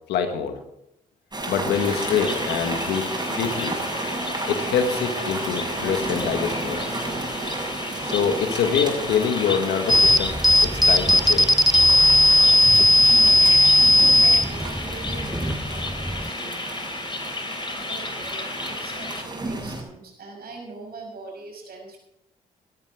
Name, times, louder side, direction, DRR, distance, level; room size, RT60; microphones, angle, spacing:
voice 1, 0.1-0.6 1.5-3.0 3.3-3.7 4.5-6.8 8.0-11.5, left 7 dB, 80° left, 6 dB, 1.7 m, -25 dB
sound 1, 1.3-19.8, right 2 dB, 25° right, 7.1 m, -32 dB
sound 2, 1.7-19.2, left 2 dB, 30° left, 3.1 m, -34 dB
voice 2, 7.9-8.6 8.9-9.2 14.0-16.7 17.9-22.0, right 3 dB, 65° right, 1 dB, 6.3 m, -42 dB
sound 3, 9.9-16.3, left 1 dB, ahead, 0.6 m, -17 dB
17.5 x 13.0 x 3.7 m, 0.81 s
hypercardioid pair, 45°, 17 cm